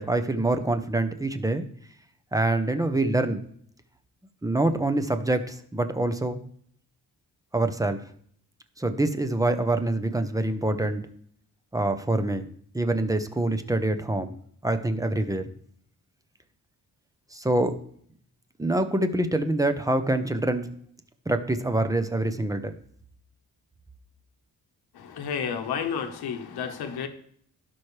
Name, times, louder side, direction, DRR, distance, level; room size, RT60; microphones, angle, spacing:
voice 1, 0.0-1.6 2.3-3.4 4.4-6.4 7.5-8.0 8.8-11.1 11.7-12.4 12.7-14.4 14.6-15.4 17.3-17.7 18.6-20.7 21.3-22.7, right 2 dB, 10° right, 9 dB, 0.7 m, -25 dB
voice 2, 25.2-27.1, left 7 dB, 85° left, 6 dB, 1.3 m, -31 dB
16.5 x 5.9 x 3.3 m, 0.62 s
wide cardioid pair, 135°, 37 cm